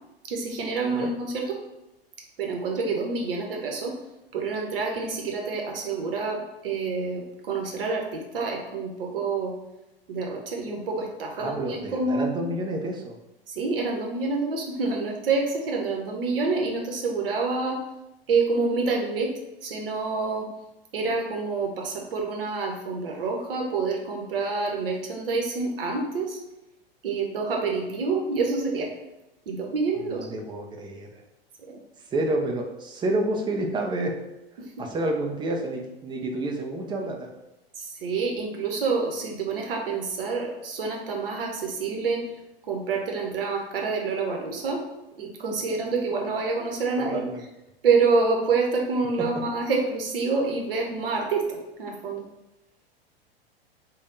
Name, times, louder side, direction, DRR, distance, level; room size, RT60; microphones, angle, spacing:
voice 1, 0.3-1.6 2.4-3.9 4.3-9.6 10.1-12.5 13.5-17.8 18.3-19.3 19.6-20.5 20.9-26.4 27.0-28.9 29.5-30.3 31.6-31.8 34.6-34.7 37.8-42.2 42.7-44.8 45.2-47.2 47.8-52.2, right 4 dB, 65° right, 1 dB, 0.8 m, -27 dB
voice 2, 11.4-13.2 30.0-31.1 32.1-34.1 34.8-37.3 47.0-47.4, right 1 dB, 15° right, 1 dB, 0.5 m, -29 dB
3.4 x 2.2 x 3.8 m, 0.94 s
figure-of-eight pair, 90°, 30 cm